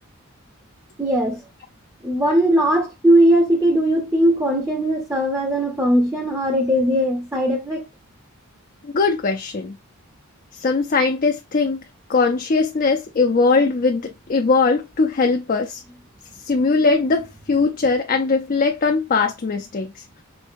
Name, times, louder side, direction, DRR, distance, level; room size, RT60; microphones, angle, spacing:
voice 1, 1.0-1.4 2.0-7.8, right 1 dB, 10° right, 0.6 m, -19 dB
voice 2, 8.8-9.8 10.5-11.8 12.1-15.8 16.4-20.2, left 4 dB, 40° left, 0.4 m, -20 dB
4.5 x 3.2 x 2.6 m
head